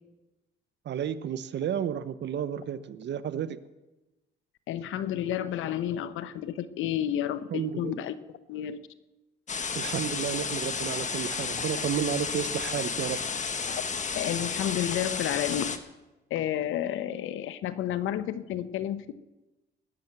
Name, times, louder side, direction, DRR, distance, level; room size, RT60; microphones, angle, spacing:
voice 1, 0.8-3.6 7.5-8.0 9.7-13.2, right 9 dB, 65° right, 13 dB, 0.9 m, -32 dB
voice 2, 4.7-8.2 8.5-8.8 13.7-13.8 14.2-15.8 16.3-19.1, left 11 dB, 85° left, 13 dB, 0.9 m, -31 dB
sound 1, 9.5-15.8, left 5 dB, 40° left, 1.4 m, -32 dB
20.0 x 7.2 x 8.1 m, 1.1 s
cardioid pair, 90°, 20 cm